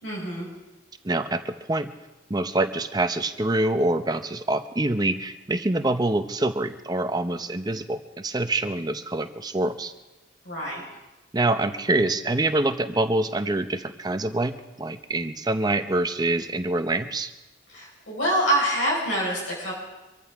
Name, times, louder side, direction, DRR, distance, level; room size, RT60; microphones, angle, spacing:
voice 1, 0.0-0.5 10.4-10.8 17.7-19.7, right 1 dB, 75° left, -3 dB, 4.8 m, -26 dB
voice 2, 1.0-1.9 2.3-9.9 11.3-17.3, right 2 dB, 20° right, 8 dB, 0.7 m, -25 dB
25.0 x 14.5 x 3.6 m, 1.0 s
head